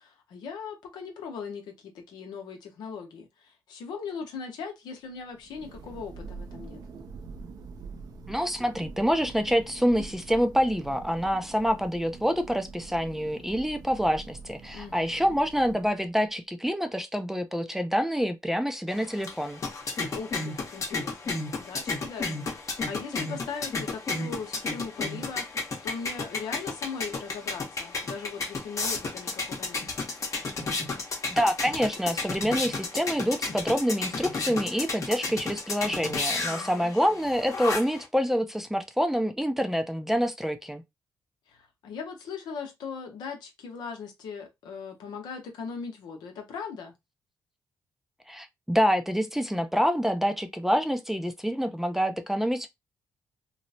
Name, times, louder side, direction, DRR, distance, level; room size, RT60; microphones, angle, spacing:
voice 1, 0.0-6.8 14.7-15.4 20.1-25.6 25.8-29.8 36.5-37.2 41.5-46.9, left 5 dB, 85° left, 0.8 m, -39 dB
Thunder, 5.2-16.2, right 4 dB, 65° right, 0.5 m, -44 dB
voice 2, 8.3-19.6 31.3-40.8 48.3-52.7, equal, 5° right, 0.4 m, -27 dB
sound 1, 18.9-38.1, left 3 dB, 45° left, 0.9 m, -33 dB
3.0 x 2.0 x 2.6 m
cardioid pair, 70°, 7 cm